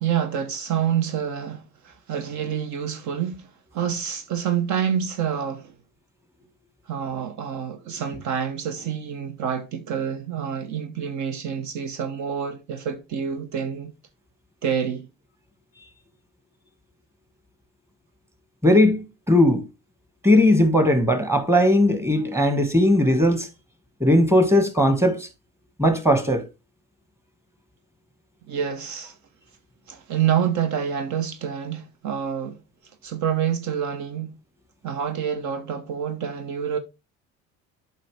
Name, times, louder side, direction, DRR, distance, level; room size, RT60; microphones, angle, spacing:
voice 1, 0.0-5.7 6.9-13.9 14.6-15.1 28.5-29.2 29.9-32.6 33.0-34.4 34.8-36.8, right 8 dB, 60° right, 0.9 m, -27 dB
voice 2, 18.6-19.6 20.2-23.5 24.0-25.3 25.8-26.5, left 1 dB, 10° right, 1.7 m, -18 dB
7.5 x 5.4 x 3.4 m
supercardioid pair, 80°, 33 cm